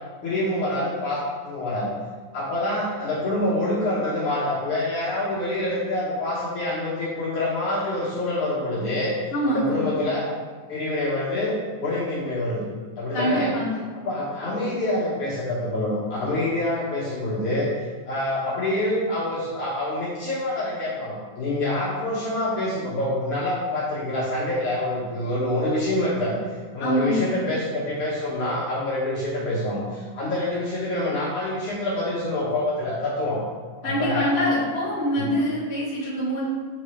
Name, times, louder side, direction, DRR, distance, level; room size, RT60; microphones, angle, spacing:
voice 1, 0.2-1.9 2.3-9.1 9.4-10.3 10.7-11.5 11.8-12.7 13.0-13.5 14.0-33.4 33.8-34.3 35.2-35.3, left 1 dB, 65° left, -7 dB, 1.5 m, -26 dB
voice 2, 9.3-9.9 13.1-13.8 26.8-27.4 33.8-36.4, equal, 80° left, -9 dB, 0.5 m, -25 dB
5.9 x 5.2 x 3.2 m, 1.5 s
omnidirectional pair, 4.1 m